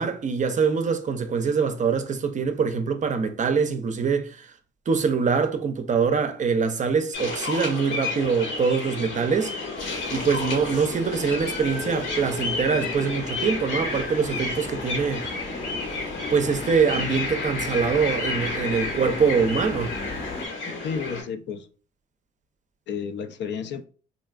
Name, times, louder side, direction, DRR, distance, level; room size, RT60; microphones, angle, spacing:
voice 1, 0.0-4.5 4.9-9.5 10.1-15.3 16.3-19.9, right 5 dB, 40° right, 0.5 m, -24 dB
sound 1, 7.1-21.2, left 3 dB, 85° left, 1.5 m, -31 dB
sound 2, 9.8-20.5, left 2 dB, 30° left, 0.7 m, -36 dB
voice 2, 20.8-21.7 22.9-23.9, left 6 dB, 65° left, 0.4 m, -31 dB
3.7 x 2.4 x 2.3 m
cardioid pair, 90°, 20 cm